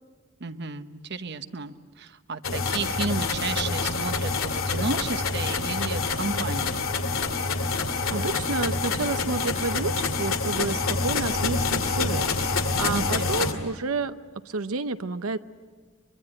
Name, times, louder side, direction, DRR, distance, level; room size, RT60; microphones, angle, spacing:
voice 1, 0.4-6.8 12.7-13.6, right 3 dB, 55° right, 10 dB, 1.0 m, -33 dB
sound 1, 2.4-13.5, left 4 dB, 75° left, 2.4 m, -27 dB
voice 2, 8.1-14.2 14.5-15.4, right 3 dB, 90° right, 10 dB, 0.8 m, -30 dB
24.0 x 23.0 x 9.0 m, 1.5 s
head